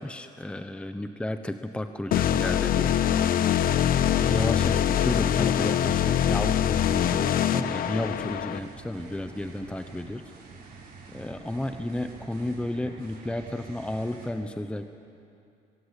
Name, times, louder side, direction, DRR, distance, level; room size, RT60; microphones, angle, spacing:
voice 1, 0.0-2.9 4.0-10.2 11.1-14.9, left 1 dB, 5° left, 8 dB, 0.9 m, -32 dB
sound 1, 2.1-8.6, left 10 dB, 60° left, 1.0 m, -24 dB
sound 2, 4.1-14.3, right 4 dB, 65° right, 6.5 m, -47 dB
22.0 x 22.0 x 8.2 m, 2.6 s
cardioid pair, 110°, 17 cm